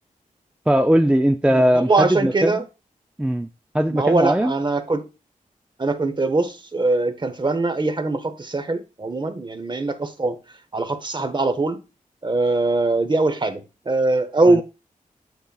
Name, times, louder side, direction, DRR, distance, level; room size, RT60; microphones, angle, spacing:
voice 1, 0.7-2.6 3.2-3.5 3.7-4.5, equal, 10° right, 0.4 m, -19 dB
voice 2, 1.5-2.6 3.9-5.0 5.8-10.4 10.7-11.8 12.2-14.6, right 2 dB, 35° right, 0.8 m, -22 dB
8.1 x 5.3 x 2.3 m
wide cardioid pair, 80°, 14 cm